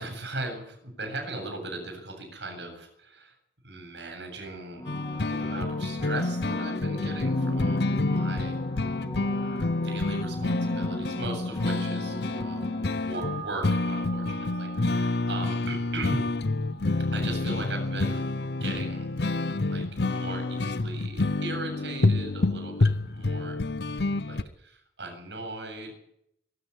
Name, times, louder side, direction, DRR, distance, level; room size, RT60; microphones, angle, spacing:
voice 1, 0.0-3.4 3.6-4.8 5.1-8.6 9.3-16.3 17.1-18.3 18.6-19.1 19.7-23.6 24.2-25.9, right 2 dB, 70° right, 4 dB, 8.0 m, -38 dB
sound 1, 4.7-13.3 18.7-18.8, left 1 dB, 20° left, 2.9 m, -38 dB
sound 2, 4.9-24.4, left 2 dB, 65° left, 0.8 m, -28 dB
sound 3, 13.1-21.9 22.2-22.3, right 4 dB, 45° right, 4.4 m, -47 dB
22.5 x 12.5 x 10.0 m, 0.72 s
head